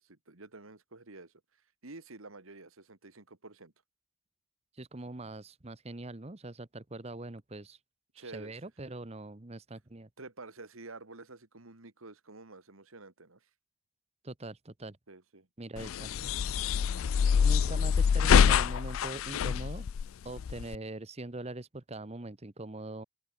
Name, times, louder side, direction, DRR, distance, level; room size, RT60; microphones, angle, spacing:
voice 1, 0.0-1.3 1.8-3.7 8.2-8.5 10.2-13.5 15.1-15.5 17.2-17.5, right 3 dB, 85° right, 2.2 m, -49 dB
voice 2, 4.7-7.8 8.1-10.1 14.2-15.0 15.6-16.3 17.4-19.9 20.2-23.0, right 2 dB, 30° right, 1.0 m, -42 dB
sound 1, 15.8-20.8, left 7 dB, 80° left, 0.4 m, -26 dB
open air
head